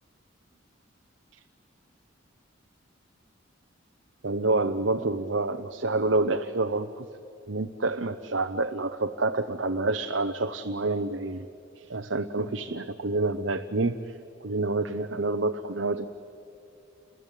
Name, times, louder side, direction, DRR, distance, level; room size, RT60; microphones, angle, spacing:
voice 1, 4.2-7.1 7.5-11.5 11.8-16.1, right 2 dB, 70° right, 6 dB, 0.8 m, -28 dB
29.0 x 21.5 x 9.1 m, 2.5 s
head